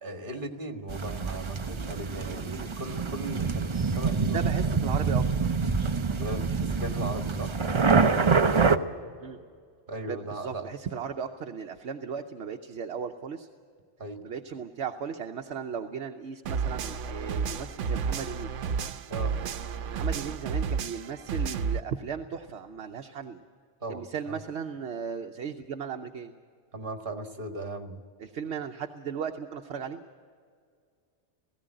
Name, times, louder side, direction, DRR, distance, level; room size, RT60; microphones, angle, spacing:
voice 1, 0.0-4.8 6.2-7.5 9.9-10.7 14.0-14.2 19.1-19.3 23.8-24.4 26.7-28.0, right 2 dB, 45° right, 4 dB, 1.9 m, -37 dB
sound 1, 0.9-8.8, right 5 dB, 30° right, 0.6 m, -26 dB
voice 2, 4.3-5.5 9.2-9.4 10.1-13.5 14.2-18.6 19.9-23.4 23.9-26.3 28.2-30.0, right 6 dB, 70° right, 4 dB, 1.1 m, -36 dB
sound 2, 16.5-21.8, right 6 dB, 90° right, 1.0 m, -31 dB
18.0 x 16.0 x 9.0 m, 2.1 s
omnidirectional pair, 1.2 m